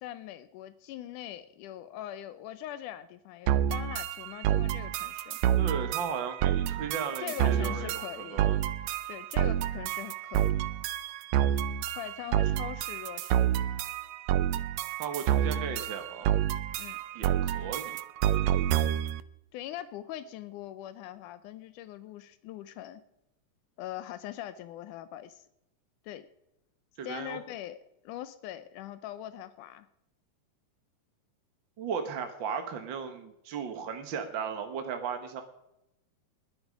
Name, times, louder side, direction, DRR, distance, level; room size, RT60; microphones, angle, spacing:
voice 1, 0.0-5.4 7.2-8.5 9.1-10.5 11.9-13.5 16.8-17.0 19.5-23.0 23.8-25.5 26.0-26.3 27.0-27.8 28.0-29.9, left 12 dB, 85° left, 13 dB, 2.2 m, -42 dB
sound 1, 3.5-19.2, right 11 dB, 75° right, 1.7 m, -29 dB
voice 2, 5.6-8.6 15.0-16.3 17.1-18.0 18.2-18.4 27.0-27.4 31.8-35.4, right 6 dB, 50° right, 6 dB, 1.5 m, -36 dB
21.0 x 9.8 x 5.1 m, 0.85 s
omnidirectional pair, 3.6 m